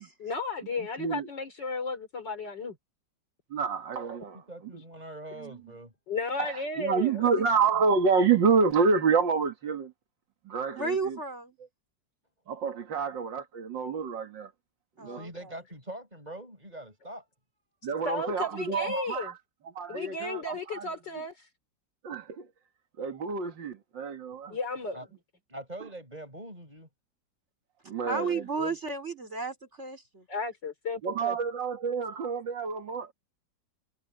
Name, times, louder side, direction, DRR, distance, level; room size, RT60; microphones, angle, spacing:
voice 1, 0.2-2.7 6.1-7.3 18.0-19.3 19.9-21.3 24.5-25.0 30.3-31.3, left 3 dB, 70° left, 4.6 m, -34 dB
voice 2, 1.0-1.3 3.5-4.4 6.4-9.9 10.5-11.2 12.5-14.5 15.0-15.2 17.8-19.4 19.6-20.9 22.0-22.5 23.0-24.6 27.9-28.7 31.0-33.1, right 5 dB, 85° right, 2.5 m, -28 dB
voice 3, 4.3-5.9 15.0-17.2 24.9-25.1 25.5-26.9, right 1 dB, 20° right, 6.9 m, -43 dB
voice 4, 10.7-11.6 15.0-15.5 28.0-30.3, right 4 dB, 40° right, 3.9 m, -33 dB
omnidirectional pair, 2.0 m